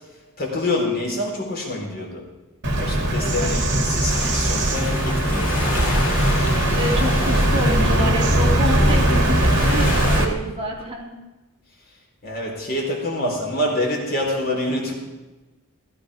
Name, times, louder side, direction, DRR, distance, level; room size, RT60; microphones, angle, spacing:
voice 1, 0.4-2.2 2.8-5.8 12.2-14.9, left 1 dB, 45° left, 0 dB, 4.0 m, -26 dB
Bird vocalization bird call bird song, 2.6-10.2, right 1 dB, 55° right, 2.4 m, -20 dB
voice 2, 3.2-3.5 6.7-11.1, right 1 dB, 25° right, -3 dB, 3.3 m, -27 dB
sound 1, 4.1-10.3, left 3 dB, 60° left, 3.0 m, -31 dB
15.5 x 15.0 x 4.9 m, 1.1 s
head